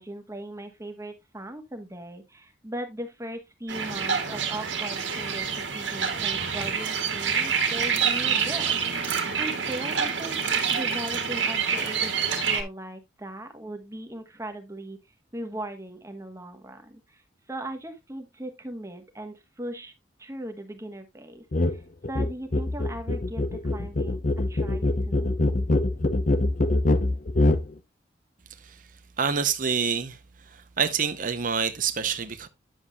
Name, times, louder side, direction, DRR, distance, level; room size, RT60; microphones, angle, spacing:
voice 1, 0.0-8.7 9.0-10.4 10.7-12.1 12.4-15.0 15.3-17.2 17.5-19.9 20.2-21.8 22.1-24.2 24.5-25.4, right 1 dB, 15° right, 1.2 m, -38 dB
sound 1, 3.7-12.6, right 6 dB, 70° right, 1.8 m, -27 dB
sound 2, 21.5-21.8 22.0-27.7, left 2 dB, 45° left, 0.7 m, -24 dB
voice 2, 29.2-30.2 30.8-32.5, right 6 dB, 45° right, 0.7 m, -26 dB
10.0 x 7.1 x 2.3 m
head